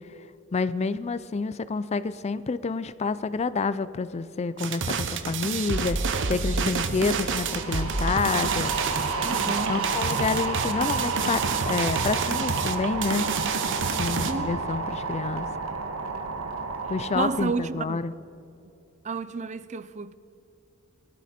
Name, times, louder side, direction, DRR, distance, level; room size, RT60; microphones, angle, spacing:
voice 1, 0.5-8.7 9.5-13.3 14.0-15.5 16.9-18.1, left 4 dB, 30° left, 0.4 m, -28 dB
sound 1, 4.6-14.3, right 5 dB, 60° right, 1.0 m, -29 dB
sound 2, 7.2-17.5, right 4 dB, 80° right, 1.5 m, -30 dB
voice 2, 9.2-9.9 14.3-14.6 17.1-18.0 19.0-20.1, right 4 dB, 35° right, 0.4 m, -31 dB
20.5 x 12.5 x 4.3 m
head